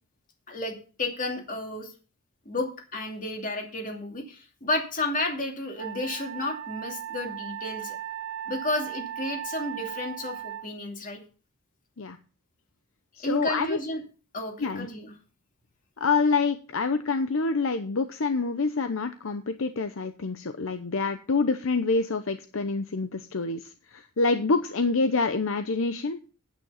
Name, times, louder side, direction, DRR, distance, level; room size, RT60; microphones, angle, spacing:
voice 1, 0.5-1.9 2.5-8.0 8.5-11.2 13.2-14.0 14.3-15.1, left 2 dB, 40° left, 3 dB, 2.6 m, -32 dB
Wind instrument woodwind instrument, 5.8-10.7, right 10 dB, 60° right, 0.9 m, -37 dB
voice 2, 13.2-13.8 14.6-14.9 16.0-26.2, left 4 dB, 65° left, 9 dB, 0.7 m, -27 dB
9.3 x 9.3 x 5.7 m, 0.37 s
head